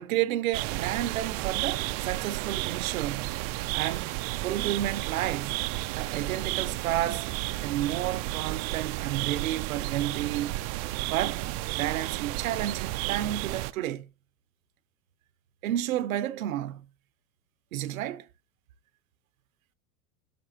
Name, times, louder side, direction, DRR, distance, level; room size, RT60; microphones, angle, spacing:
voice 1, 0.0-3.3 3.7-4.1 4.4-5.6 5.9-7.3 7.6-10.6 11.1-14.1 15.6-16.8 17.7-18.3, right 13 dB, 85° right, 1.0 m, -31 dB
sound 1, 0.5-13.7, right 18 dB, 45° right, 0.5 m, -32 dB
11.5 x 6.7 x 2.9 m
supercardioid pair, 130°, 40 cm